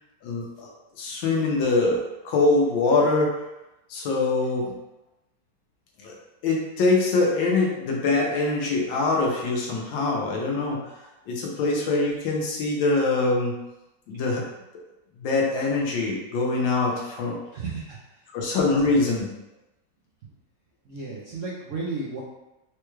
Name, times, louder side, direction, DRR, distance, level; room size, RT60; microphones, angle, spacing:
voice 1, 0.2-0.7 1.0-3.3 3.9-4.7 6.0-6.1 6.4-10.9 11.3-13.6 14.1-14.4 15.2-17.4 18.3-19.3, left 3 dB, 90° left, -1 dB, 1.6 m, -23 dB
voice 2, 17.5-18.3 18.8-19.0 20.2-20.3 20.8-22.2, right 3 dB, 65° right, -6 dB, 0.8 m, -34 dB
4.5 x 2.3 x 3.1 m, 0.95 s
omnidirectional pair, 2.0 m